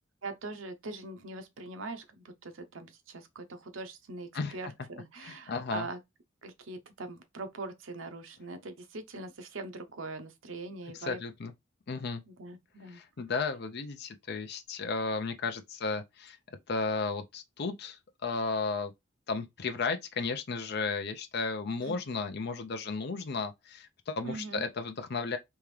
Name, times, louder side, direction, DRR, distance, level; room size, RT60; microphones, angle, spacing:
voice 1, 0.2-6.0 6.4-11.2 12.3-13.0 21.8-22.0 24.2-24.6, right 3 dB, 80° right, 0.8 m, -42 dB
voice 2, 5.2-5.9 10.9-11.5 11.9-12.2 12.9-16.4 16.7-18.9 19.3-25.4, left 4 dB, 55° left, 0.5 m, -34 dB
3.5 x 2.9 x 3.1 m
head